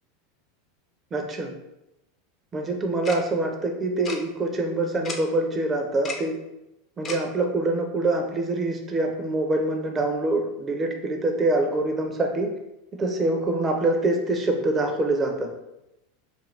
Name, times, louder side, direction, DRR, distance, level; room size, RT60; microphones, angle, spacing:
voice 1, 1.1-1.5 2.5-6.3 7.0-12.5 12.9-15.5, right 2 dB, 25° right, 3 dB, 0.5 m, -25 dB
Tick-tock, 3.0-3.2 4.0-4.2 5.0-5.2 6.0-6.2 7.0-7.2, left 4 dB, 35° left, 0.5 m, -32 dB
2.5 x 2.2 x 3.2 m, 0.90 s
hypercardioid pair, 95°, 0 cm